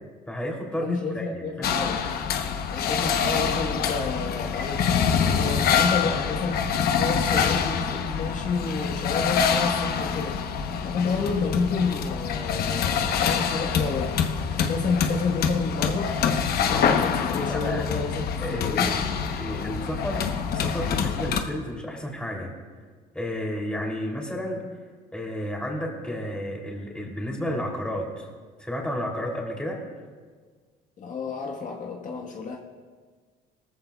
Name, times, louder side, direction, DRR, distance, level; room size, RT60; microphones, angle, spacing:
voice 1, 0.3-1.8 17.1-17.8 18.4-22.5 23.1-24.6 25.1-28.3 28.6-29.8, equal, 5° left, -1 dB, 3.0 m, -32 dB
voice 2, 0.8-2.0 2.7-6.7 6.9-10.4 10.8-14.2 14.5-19.0 31.0-32.6, left 4 dB, 50° left, 0 dB, 1.4 m, -30 dB
sound 1, 1.6-21.4, left 7 dB, 65° left, 1.0 m, -25 dB
19.0 x 14.5 x 2.4 m, 1.5 s
cardioid pair, 110°, 17 cm